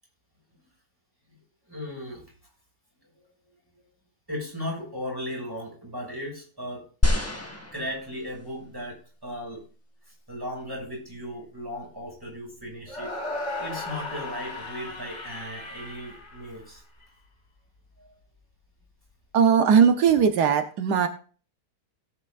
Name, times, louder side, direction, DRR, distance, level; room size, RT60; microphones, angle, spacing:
voice 1, 1.7-2.3 4.3-6.9 7.7-9.6 10.3-13.1 13.6-16.8 18.0-18.1, left 1 dB, 15° right, -2 dB, 6.4 m, -36 dB
sound 1, 7.0-8.5 9.3-9.4, left 2 dB, 10° left, 2.0 m, -26 dB
sound 2, 12.9-17.1, left 2 dB, 45° left, 2.8 m, -36 dB
voice 2, 19.3-21.1, right 7 dB, 85° right, 7 dB, 1.5 m, -19 dB
17.5 x 8.9 x 2.5 m, 0.38 s
omnidirectional pair, 1.7 m